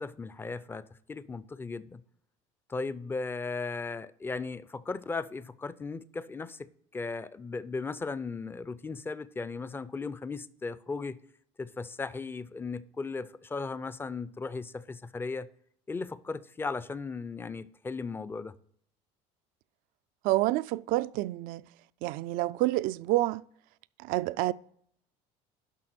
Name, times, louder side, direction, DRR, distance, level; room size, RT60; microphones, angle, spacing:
voice 1, 0.0-2.0 2.7-11.2 11.6-15.5 15.9-18.5, left 4 dB, 15° left, 0.5 m, -37 dB
voice 2, 20.2-21.6 22.0-23.4 24.0-24.5, right 17 dB, 65° right, 0.4 m, -28 dB
11.0 x 5.8 x 4.3 m
supercardioid pair, 110°, 15 cm